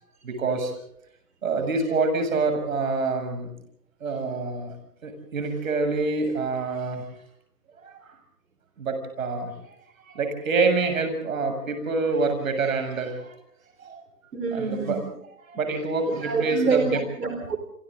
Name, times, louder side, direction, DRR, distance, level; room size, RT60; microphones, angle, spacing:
voice 1, 0.2-0.7 1.4-3.5 4.0-4.7 5.0-7.0 7.8-8.0 8.8-9.5 10.0-13.3 13.8-14.0 14.5-15.0 15.5-16.8, right 3 dB, 55° right, 6 dB, 7.5 m, -26 dB
voice 2, 14.3-15.0 16.2-17.6, right 4 dB, 75° right, 5 dB, 4.9 m, -26 dB
28.5 x 26.5 x 3.8 m, 0.70 s
figure-of-eight pair, 145°, 48 cm